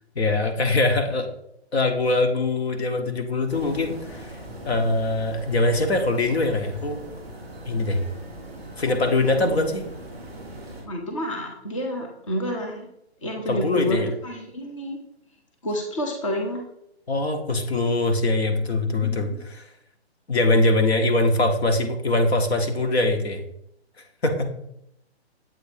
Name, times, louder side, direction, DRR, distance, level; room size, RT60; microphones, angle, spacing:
voice 1, 0.1-1.3 1.7-4.3 4.6-7.0 7.6-8.0 8.8-9.9 13.5-14.1 17.1-19.7 20.3-23.4 24.2-24.5, left 2 dB, 70° left, 5 dB, 1.1 m, -22 dB
sound 1, 3.5-10.8, right 1 dB, 5° left, 1.1 m, -40 dB
voice 2, 10.8-12.9 13.2-15.0 15.6-16.6 19.0-19.2, equal, 30° left, 2 dB, 0.7 m, -29 dB
7.7 x 2.8 x 4.9 m, 0.76 s
hypercardioid pair, 175°, 33 cm